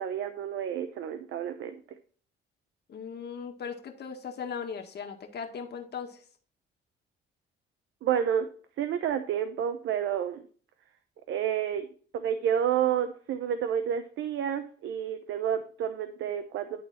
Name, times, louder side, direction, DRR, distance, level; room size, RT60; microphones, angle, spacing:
voice 1, 0.0-1.8 8.0-8.5 8.8-10.4 11.3-11.9 12.1-16.8, right 9 dB, 75° right, 9 dB, 0.8 m, -30 dB
voice 2, 2.9-6.2, left 6 dB, 55° left, 4 dB, 1.9 m, -38 dB
11.5 x 4.0 x 4.3 m, 0.43 s
cardioid pair, 90°, 20 cm